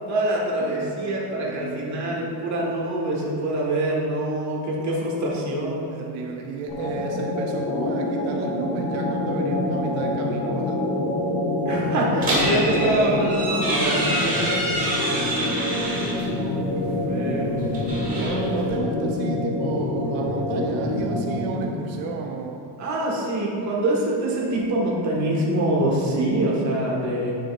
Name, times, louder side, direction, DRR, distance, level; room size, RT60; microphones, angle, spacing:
voice 1, 0.1-5.9 11.6-14.5 16.2-16.7 17.1-17.6 22.8-27.3, right 1 dB, 40° right, -4 dB, 1.6 m, -25 dB
voice 2, 0.6-2.4 5.9-10.9 15.3-16.1 18.1-22.6, right 5 dB, 85° right, 2 dB, 0.8 m, -33 dB
sound 1, 6.7-21.8, left 1 dB, 50° left, 1.5 m, -26 dB
sound 2, 12.2-16.3 17.6-18.7, right 1 dB, 20° right, 1.5 m, -27 dB
10.0 x 7.1 x 2.5 m, 2.6 s
cardioid pair, 170°, 45 cm